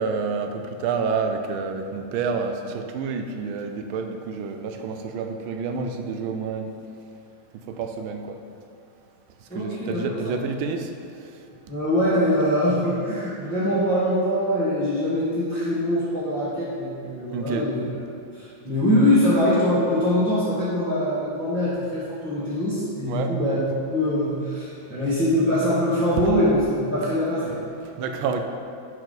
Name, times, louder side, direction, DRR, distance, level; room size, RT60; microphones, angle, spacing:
voice 1, 0.0-6.7 7.7-8.4 9.5-10.9 17.3-17.7 23.1-23.3 27.8-28.4, right 5 dB, 85° right, 6 dB, 1.5 m, -28 dB
voice 2, 9.5-10.1 11.7-17.8 18.3-23.6 23.9-27.5, left 1 dB, 5° left, -12 dB, 1.4 m, -23 dB
10.5 x 4.8 x 3.9 m, 2.5 s
omnidirectional pair, 2.2 m